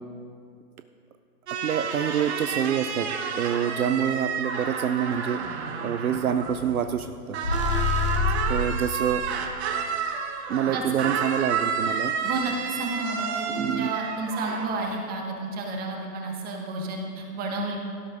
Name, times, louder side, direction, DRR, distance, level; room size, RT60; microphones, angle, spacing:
sound 1, 1.5-7.1 7.3-14.7, right 6 dB, 45° right, 1.3 m, -30 dB
voice 1, 1.6-3.1 3.4-5.4 5.8-7.4 8.5-9.2 10.5-12.1 13.5-14.0, right 8 dB, 65° right, 10 dB, 0.6 m, -26 dB
sound 2, 7.4-8.7, left 5 dB, 25° left, 0.4 m, -25 dB
voice 2, 12.2-17.8, right 2 dB, 20° right, 1 dB, 1.6 m, -31 dB
17.5 x 12.0 x 2.6 m, 2.4 s
figure-of-eight pair, 120°, 47 cm